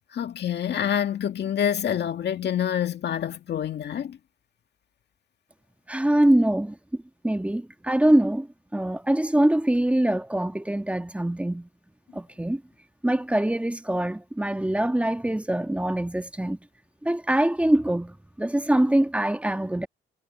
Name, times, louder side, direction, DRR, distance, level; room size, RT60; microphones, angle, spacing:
voice 1, 0.1-4.2, left 9 dB, 60° left, 2.0 m, -27 dB
voice 2, 5.9-11.7 12.1-12.6 13.0-16.6 17.0-19.9, right 1 dB, 5° right, 1.6 m, -24 dB
cardioid pair, 90°, 20 cm